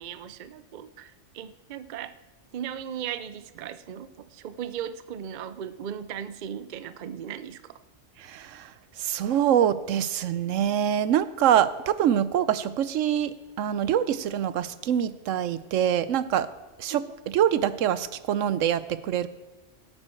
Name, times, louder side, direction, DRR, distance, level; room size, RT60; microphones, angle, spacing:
voice 1, 0.0-2.1 2.5-7.8 16.9-17.0, right 9 dB, 50° right, 14 dB, 0.6 m, -37 dB
voice 2, 8.2-8.7 9.0-16.5 16.8-17.0 17.3-19.3, right 10 dB, 85° right, 14 dB, 1.0 m, -25 dB
17.0 x 8.9 x 4.5 m, 1.1 s
omnidirectional pair, 1.3 m